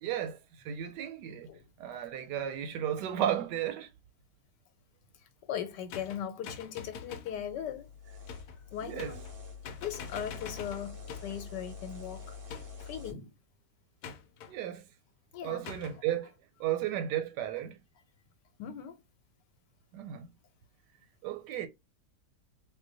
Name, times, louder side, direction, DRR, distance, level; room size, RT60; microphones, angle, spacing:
voice 1, 0.0-1.5 1.8-3.9 8.8-9.2 14.5-14.9 15.4-16.3 16.6-17.8 19.9-20.3 21.2-21.7, right 10 dB, 90° right, 1.2 m, -34 dB
voice 2, 5.5-7.9 8.7-9.2 9.8-12.4 12.8-13.3 15.3-15.7 18.6-19.0, left 9 dB, 90° left, 1.3 m, -39 dB
sound 1, 5.9-7.4 8.3-8.6 9.0-9.4 9.6-11.4 12.5-13.0 14.0-14.5 15.6-16.0, left 6 dB, 75° left, 1.0 m, -45 dB
sound 2, 7.3-13.1, left 5 dB, 40° right, 0.9 m, -46 dB
2.7 x 2.2 x 3.8 m
omnidirectional pair, 1.8 m